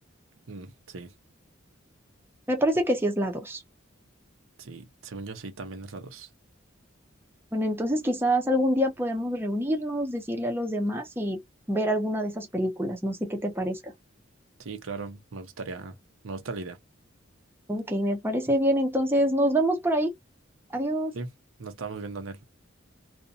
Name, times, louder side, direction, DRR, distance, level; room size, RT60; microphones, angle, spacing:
voice 1, 0.5-1.1 4.6-6.3 14.6-16.0 16.2-16.8 21.1-21.3 21.6-22.4, right 3 dB, 90° right, 0.7 m, -38 dB
voice 2, 2.5-3.6 7.5-11.4 11.7-13.9 17.7-20.1 20.7-21.1, equal, 10° right, 0.6 m, -26 dB
2.5 x 2.1 x 2.6 m
head